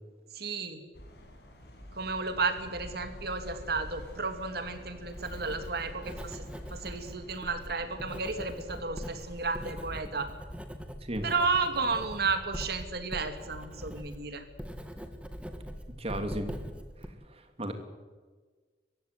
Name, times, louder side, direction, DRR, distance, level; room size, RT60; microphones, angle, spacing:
voice 1, 0.3-0.8 1.9-6.4 6.7-10.3 11.2-14.4, right 4 dB, 65° right, 8 dB, 2.7 m, -32 dB
sound 1, 0.9-9.7, equal, 70° left, 6.0 m, -48 dB
Writing, 4.3-17.1, equal, 5° right, 2.0 m, -42 dB
voice 2, 16.0-16.5 17.6-17.7, right 1 dB, 35° right, 6 dB, 2.9 m, -33 dB
23.5 x 15.5 x 9.7 m, 1.4 s
head